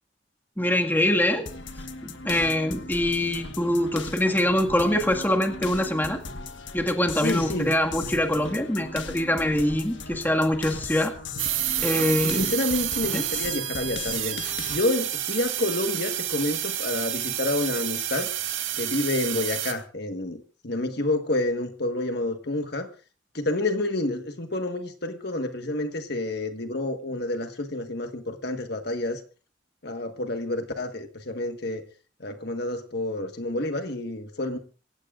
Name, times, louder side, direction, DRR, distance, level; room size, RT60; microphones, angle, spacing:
voice 1, 0.6-1.5 2.2-6.2 6.7-11.1 11.8-12.5 13.1-13.2, left 1 dB, 10° left, 2 dB, 1.8 m, -24 dB
sound 1, 1.5-14.8, left 3 dB, 75° left, 1.4 m, -38 dB
voice 2, 7.1-7.7 12.0-14.4 14.7-18.3 18.8-22.9 23.3-29.2 29.8-31.8 32.2-34.6, left 2 dB, 55° left, 6 dB, 1.5 m, -29 dB
sound 2, 11.4-19.7, right 12 dB, 80° right, 2.1 m, -29 dB
26.5 x 16.0 x 2.5 m, 0.38 s
head